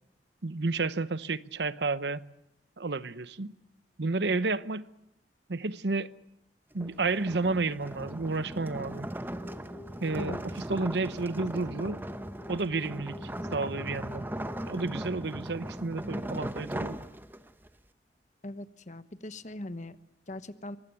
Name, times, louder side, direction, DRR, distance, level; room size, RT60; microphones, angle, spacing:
voice 1, 0.4-2.2 2.8-3.6 4.0-4.9 5.5-6.1 6.7-9.1 10.0-12.0 12.5-14.3 14.7-17.0, right 3 dB, 75° right, 15 dB, 0.9 m, -31 dB
sound 1, 6.7-17.7, right 1 dB, 10° right, 0.9 m, -38 dB
sound 2, 9.3-14.9, left 2 dB, 15° left, 4.3 m, -48 dB
voice 2, 18.4-20.0 20.3-20.8, left 1 dB, 40° left, 12 dB, 1.1 m, -40 dB
24.0 x 19.5 x 9.0 m, 0.82 s
head